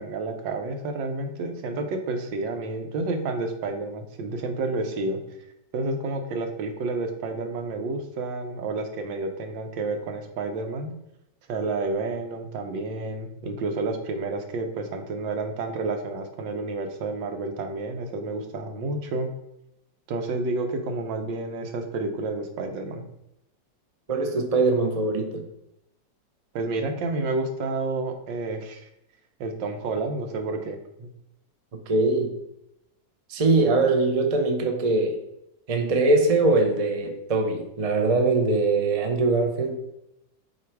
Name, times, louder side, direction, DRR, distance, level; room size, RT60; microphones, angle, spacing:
voice 1, 0.0-5.2 5.7-10.9 11.5-19.3 20.1-23.1 26.5-28.8 29.4-31.1, right 3 dB, 85° right, 5 dB, 1.5 m, -30 dB
voice 2, 24.1-25.4 31.9-32.3 33.3-35.2 35.7-39.7, right 3 dB, 55° right, 4 dB, 0.4 m, -22 dB
7.7 x 3.1 x 4.6 m, 0.85 s
omnidirectional pair, 2.0 m